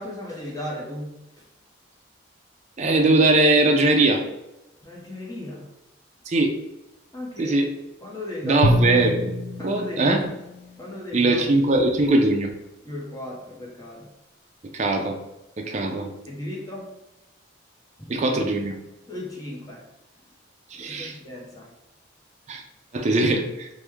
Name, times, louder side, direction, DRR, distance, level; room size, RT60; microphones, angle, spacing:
voice 1, 0.0-1.4 4.8-5.7 7.1-7.6 8.0-8.7 9.6-10.2 10.8-11.5 12.8-14.1 16.3-17.0 18.0-18.1 19.1-19.9 20.3-20.4 20.9-21.7, left 1 dB, 20° left, -4 dB, 0.6 m, -36 dB
voice 2, 2.8-4.2 6.3-6.6 7.4-7.7 8.4-9.3 9.6-10.2 11.1-12.5 14.7-15.2 15.6-16.1 18.1-18.8 20.7-21.2 22.5-22.6 22.9-23.7, right 2 dB, 35° right, 3 dB, 0.4 m, -20 dB
Drum, 8.6-11.0, equal, 50° left, 0.3 m, -25 dB
3.1 x 2.1 x 3.4 m, 0.94 s
head